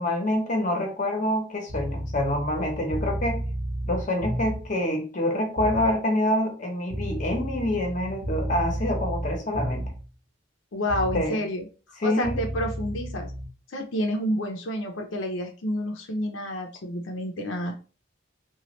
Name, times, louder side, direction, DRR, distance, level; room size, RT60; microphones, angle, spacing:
voice 1, 0.0-3.4 3.8-9.9 11.1-11.4 12.0-12.5, left 1 dB, 40° left, 3 dB, 0.8 m, -26 dB
sound 1, 1.7-4.8 5.6-6.0 6.9-10.1 10.9-11.3 12.2-13.5, right 1 dB, 60° right, 0.9 m, -32 dB
voice 2, 10.7-11.7 12.0-13.3 13.7-17.7, equal, 90° left, 3 dB, 0.6 m, -29 dB
3.0 x 2.3 x 2.9 m, 0.36 s
head